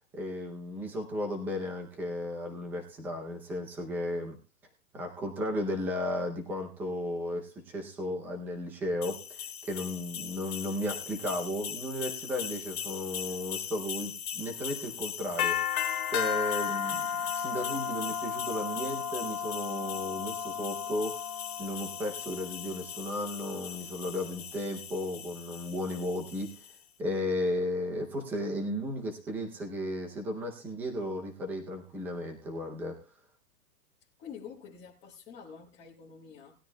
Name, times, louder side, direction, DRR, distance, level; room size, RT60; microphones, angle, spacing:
voice 1, 0.1-4.4 4.9-15.7 16.1-17.1 17.3-21.2 21.6-26.6 27.0-33.0, left 1 dB, 5° right, 2 dB, 0.6 m, -34 dB
sound 1, 9.0-26.7, left 8 dB, 65° left, 1.8 m, -36 dB
voice 2, 34.2-36.5, left 7 dB, 15° left, -4 dB, 1.1 m, -47 dB
19.0 x 12.5 x 2.2 m, 0.34 s
hypercardioid pair, 170°, 45 cm